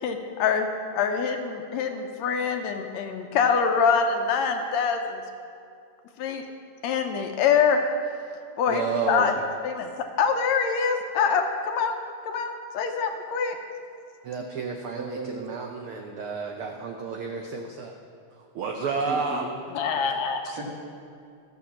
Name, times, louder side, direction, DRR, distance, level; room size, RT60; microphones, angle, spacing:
voice 1, 0.0-5.2 6.2-6.4 6.8-7.8 8.6-9.4 9.6-9.9 10.2-12.0 12.3-13.6 19.7-20.6, left 6 dB, 75° left, 5 dB, 1.9 m, -25 dB
voice 2, 8.7-9.3 14.2-18.0 18.3-19.4 20.0-20.2, right 5 dB, 75° right, 3 dB, 1.3 m, -31 dB
voice 3, 15.0-15.4 19.1-19.4 20.5-20.6, right 3 dB, 50° right, -2 dB, 2.3 m, -36 dB
14.0 x 7.0 x 7.3 m, 2.4 s
omnidirectional pair, 3.4 m